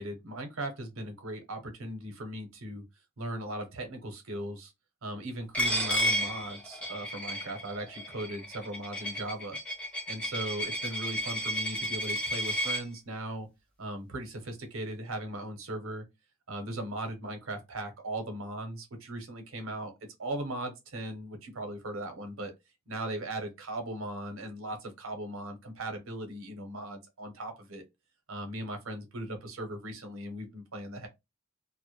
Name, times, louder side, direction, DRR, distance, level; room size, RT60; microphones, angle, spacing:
voice 1, 0.0-2.8 3.2-4.7 5.0-9.6 10.1-13.5 13.8-16.0 16.5-19.9 20.2-22.5 22.9-27.8 28.3-31.1, right 1 dB, 70° right, 0.7 m, -38 dB
Coin (dropping), 5.5-12.8, equal, 5° left, 0.7 m, -32 dB
2.1 x 2.0 x 2.9 m
head